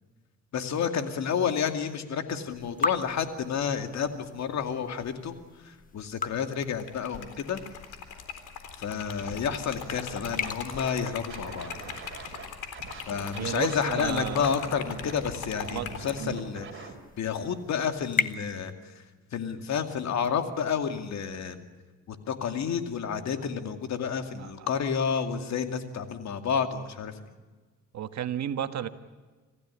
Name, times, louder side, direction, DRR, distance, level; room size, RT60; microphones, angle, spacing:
voice 1, 0.5-5.4 5.6-7.6 8.8-11.7 13.1-16.9 17.2-18.9 19.3-21.6 22.1-27.2, left 7 dB, 65° left, 7 dB, 2.5 m, -30 dB
sound 1, 2.5-18.3, left 4 dB, 30° left, 1.4 m, -39 dB
Liquid, 6.5-16.1, left 7 dB, 90° left, 3.8 m, -40 dB
Scratching (performance technique), 9.2-9.6 9.9-12.5 12.7-16.9, right 5 dB, 40° right, 4.7 m, -43 dB
voice 2, 13.3-14.5 15.6-15.9 16.2-16.4 24.4-24.7 27.9-28.9, right 10 dB, 65° right, 10 dB, 1.5 m, -33 dB
26.5 x 15.5 x 9.9 m, 1.3 s
cardioid pair, 90°, 30 cm